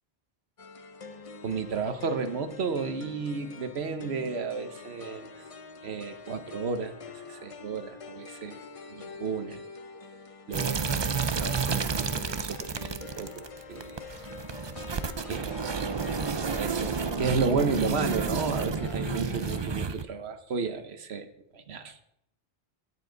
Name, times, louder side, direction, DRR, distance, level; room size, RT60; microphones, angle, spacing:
sound 1, 0.6-19.6, left 4 dB, 35° left, 0.7 m, -45 dB
voice 1, 1.4-5.5 5.8-8.6 8.9-9.6 10.5-14.0 15.2-15.6 16.4-21.3 21.5-22.0, right 5 dB, 80° right, 9 dB, 1.2 m, -33 dB
sound 2, 10.5-20.0, right 5 dB, 35° right, 0.4 m, -31 dB
17.5 x 7.3 x 3.9 m, 0.77 s
omnidirectional pair, 1.1 m